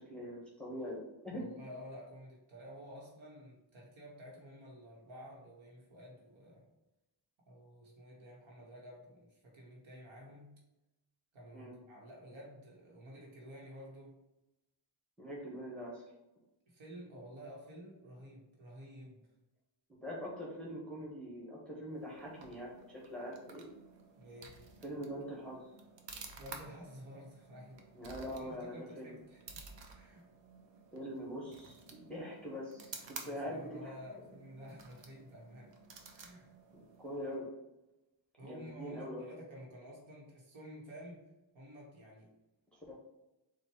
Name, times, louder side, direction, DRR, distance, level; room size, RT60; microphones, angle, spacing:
voice 1, 0.0-1.4 11.5-11.7 15.2-16.1 20.0-23.6 24.8-25.6 27.9-29.2 30.9-34.0 37.0-37.5 38.4-39.2 42.7-42.9, equal, ahead, -5 dB, 1.1 m, -43 dB
voice 2, 1.3-6.7 7.5-10.6 11.3-14.2 16.7-19.2 24.2-24.5 26.3-27.9 28.4-29.7 29.9-30.3 33.2-35.7 36.1-36.5 38.4-41.3 41.5-42.3, equal, 85° right, -3 dB, 1.4 m, -51 dB
sound 1, 21.9-37.5, right 4 dB, 65° right, 0.8 m, -53 dB
4.2 x 2.5 x 4.5 m, 0.97 s
cardioid pair, 95°, 46 cm